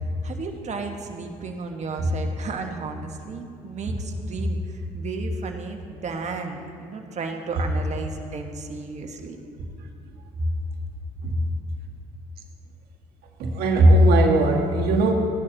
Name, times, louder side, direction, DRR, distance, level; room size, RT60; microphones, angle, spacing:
voice 1, 0.2-9.4 10.4-10.5, right 3 dB, 45° right, 3 dB, 1.5 m, -32 dB
voice 2, 13.4-15.1, right 1 dB, 70° right, 1 dB, 1.7 m, -18 dB
17.0 x 11.0 x 2.9 m, 2.6 s
supercardioid pair, 70°, 16 cm